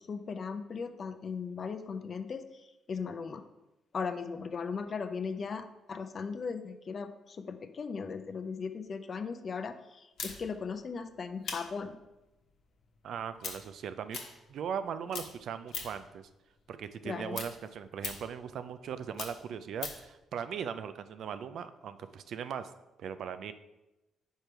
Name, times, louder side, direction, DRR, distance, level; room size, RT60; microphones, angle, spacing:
voice 1, 0.0-3.4 3.9-12.0 17.0-17.4, left 5 dB, 45° left, 8 dB, 0.5 m, -38 dB
sound 1, 10.2-14.8 15.1-16.1 16.5-20.1, left 5 dB, 75° left, 1.1 m, -42 dB
voice 2, 13.0-14.2 14.5-16.3 16.7-22.7 23.0-23.5, right 7 dB, 70° right, 11 dB, 0.4 m, -39 dB
5.1 x 4.5 x 4.5 m, 0.98 s
cardioid pair, 90°, 0 cm